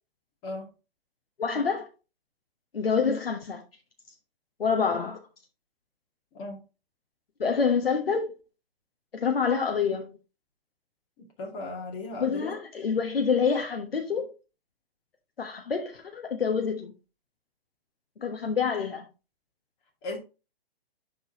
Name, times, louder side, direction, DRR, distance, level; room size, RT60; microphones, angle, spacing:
voice 1, 1.4-1.8 2.7-3.6 4.6-5.2 7.4-8.4 9.1-10.1 12.2-14.3 15.4-16.9 18.2-19.1, left 6 dB, 70° left, 1.2 m, -27 dB
voice 2, 11.2-12.5 20.0-20.2, left 2 dB, 25° left, 2.2 m, -36 dB
11.5 x 4.0 x 2.9 m
figure-of-eight pair, 125°, 30 cm